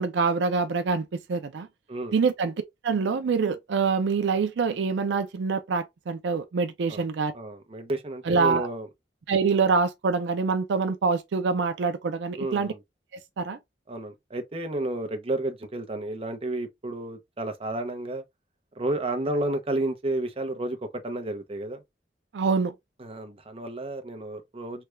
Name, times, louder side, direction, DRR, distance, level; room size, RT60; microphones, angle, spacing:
voice 1, 0.0-1.7 2.1-2.5 2.8-7.3 8.3-8.7 9.3-12.7 13.4-13.6 22.3-22.7, right 5 dB, 75° right, 0.4 m, -25 dB
voice 2, 7.3-8.9 12.4-12.8 13.9-18.2 18.8-21.8 23.0-24.8, right 1 dB, 35° right, 0.7 m, -31 dB
3.3 x 2.3 x 3.1 m
head